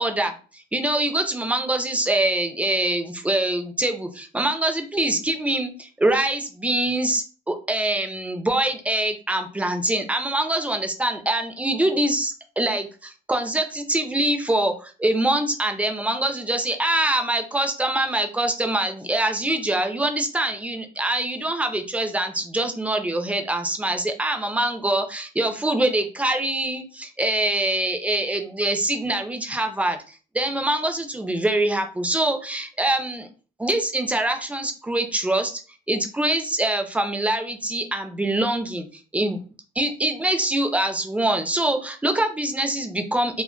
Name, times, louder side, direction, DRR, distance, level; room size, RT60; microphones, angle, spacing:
voice 1, 0.0-33.3 33.6-35.6 35.9-38.9 39.1-39.4 39.8-43.4, right 1 dB, 5° right, 6 dB, 0.5 m, -24 dB
2.2 x 2.1 x 3.7 m, 0.37 s
cardioid pair, 90°, 20 cm